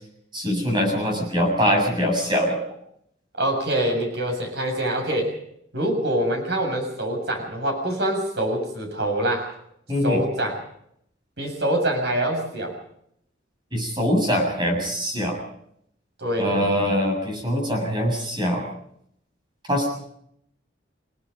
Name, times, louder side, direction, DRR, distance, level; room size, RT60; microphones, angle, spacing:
voice 1, 0.3-2.6 9.9-10.2 13.7-15.4 16.4-18.7 19.7-19.9, equal, 25° right, 2 dB, 7.2 m, -23 dB
voice 2, 3.4-5.3 5.7-9.5 10.0-10.6 11.4-12.8 16.2-16.6, right 1 dB, 60° right, 3 dB, 7.0 m, -25 dB
28.5 x 18.0 x 5.3 m, 0.72 s
head